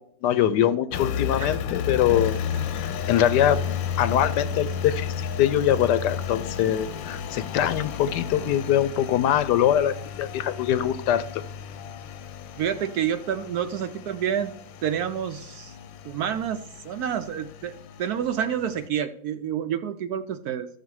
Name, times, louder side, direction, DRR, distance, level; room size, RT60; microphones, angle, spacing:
voice 1, 0.0-2.3 2.8-3.6 4.0-5.1 5.4-11.4, left 10 dB, 75° left, 14 dB, 1.1 m, -23 dB
Engine, 0.9-18.9, left 8 dB, 90° left, 1.4 m, -33 dB
voice 2, 12.6-14.5 14.8-15.8 16.0-17.7 18.0-20.7, right 9 dB, 70° right, 9 dB, 0.9 m, -28 dB
13.5 x 6.5 x 4.7 m, 0.67 s
omnidirectional pair, 2.0 m